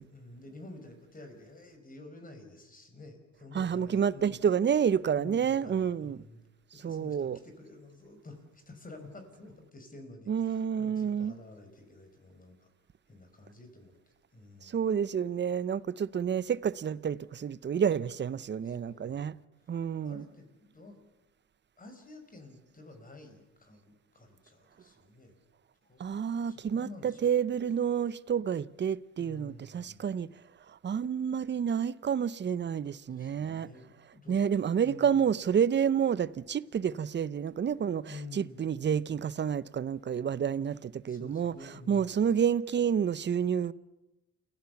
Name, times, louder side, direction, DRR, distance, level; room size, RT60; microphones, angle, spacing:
voice 1, 0.0-4.4 5.2-6.4 6.7-12.7 13.1-13.9 14.3-14.9 18.7-19.3 20.0-21.0 21.8-25.3 25.8-26.0 26.4-27.2 29.2-30.1 33.1-35.2 38.1-38.6 41.1-42.2, left 2 dB, 30° left, 5.2 m, -50 dB
voice 2, 3.5-6.2 6.7-7.4 10.3-11.4 14.6-19.3 19.7-20.2 26.0-30.3 30.7-33.7 34.3-43.7, right 8 dB, 35° right, 0.7 m, -29 dB
29.0 x 16.0 x 7.1 m
cardioid pair, 90°, 30 cm